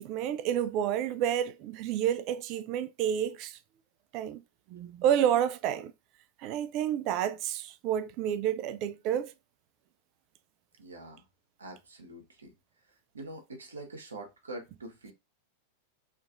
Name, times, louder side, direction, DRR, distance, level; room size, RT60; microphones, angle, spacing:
voice 1, 0.0-3.6 4.1-4.4 4.7-5.9 6.4-9.3, right 10 dB, 40° right, 0.3 m, -29 dB
voice 2, 10.8-11.2 11.6-12.5 13.1-15.1, right 2 dB, 75° right, 0.8 m, -44 dB
2.9 x 2.4 x 2.5 m
figure-of-eight pair, 90°, 0 cm